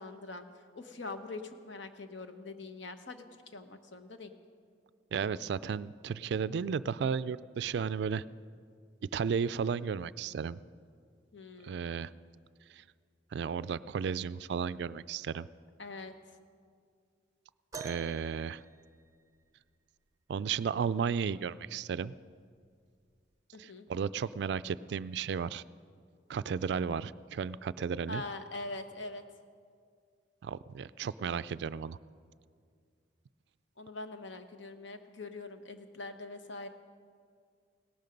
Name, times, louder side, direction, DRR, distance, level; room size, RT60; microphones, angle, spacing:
voice 1, 0.0-4.3 11.3-11.8 15.8-16.1 23.5-23.9 28.1-29.2 33.8-36.7, left 2 dB, 75° left, 8 dB, 1.0 m, -43 dB
voice 2, 5.1-8.2 9.1-10.6 11.6-12.1 12.8-12.9 13.3-15.5 17.8-18.6 20.3-22.1 23.6-25.6 26.3-28.2 30.4-32.0, right 6 dB, 60° right, 16 dB, 0.3 m, -34 dB
sound 1, 17.7-19.6 21.3-21.4 22.2-22.4 23.3-23.4, right 5 dB, 20° right, 0.6 m, -47 dB
17.5 x 12.5 x 5.3 m, 2.1 s
head